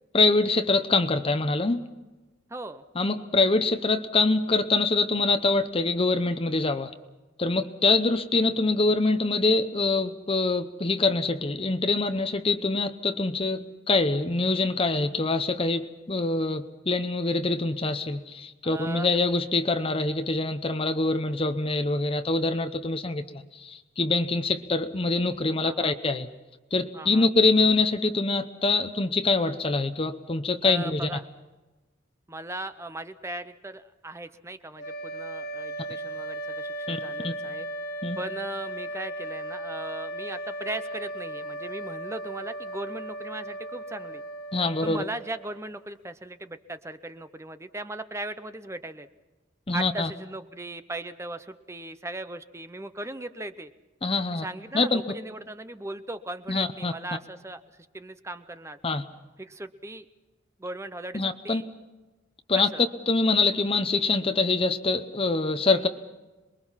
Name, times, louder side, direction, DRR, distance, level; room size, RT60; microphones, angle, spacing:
voice 1, 0.1-1.8 3.0-6.9 7.4-26.3 26.7-31.1 36.9-37.0 37.2-37.3 38.0-38.2 44.5-45.0 49.7-50.1 54.0-54.5 54.7-55.0 56.5-56.9 58.8-59.0 61.1-61.6 62.5-62.7 63.1-65.9, left 3 dB, 30° left, 8 dB, 0.8 m, -24 dB
voice 2, 2.5-2.8 18.6-19.2 25.6-26.0 26.9-27.3 30.6-31.3 32.3-37.7 38.2-44.2 44.8-49.1 49.7-53.7 54.3-58.8 59.4-60.1 60.6-61.7 62.6-62.8, right 2 dB, 15° right, 11 dB, 0.7 m, -38 dB
sound 1, 34.8-45.7, right 1 dB, 55° left, 1.7 m, -36 dB
27.0 x 21.5 x 5.7 m, 1.2 s
head